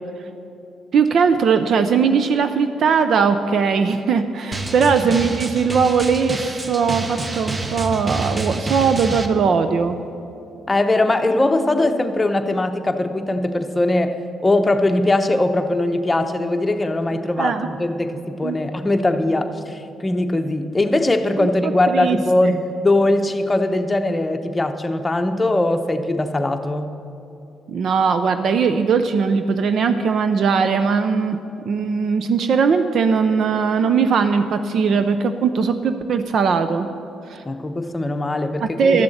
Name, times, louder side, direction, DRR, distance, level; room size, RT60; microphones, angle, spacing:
voice 1, 0.9-10.0 17.4-17.7 18.4-18.6 21.4-22.5 27.7-31.4 31.7-36.9 37.3-37.4 38.6-39.0, right 5 dB, 60° right, 9 dB, 0.5 m, -19 dB
Drum, 4.5-9.3, right 3 dB, 30° right, 0.9 m, -28 dB
voice 2, 10.7-26.9 37.4-39.0, left 2 dB, 20° left, 6 dB, 0.8 m, -20 dB
12.5 x 6.9 x 8.0 m, 2.8 s
cardioid pair, 90°, 0 cm